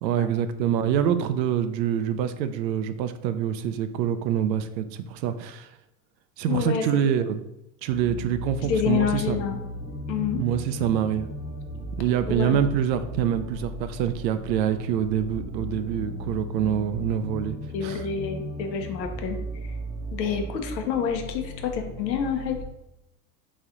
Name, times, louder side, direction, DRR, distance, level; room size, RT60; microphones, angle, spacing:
voice 1, 0.0-5.7 6.4-7.4 7.8-9.4 10.3-11.3 12.0-17.6 17.8-18.1, right 9 dB, 85° right, 11 dB, 0.6 m, -26 dB
voice 2, 6.5-6.8 8.7-9.6 10.1-10.4 12.3-12.7 17.7-19.7 20.1-22.6, left 7 dB, 85° left, 5 dB, 0.8 m, -28 dB
sound 1, 7.9-22.6, equal, 10° right, 0.6 m, -36 dB
3.2 x 2.8 x 3.7 m, 0.85 s
hypercardioid pair, 115°, 50 cm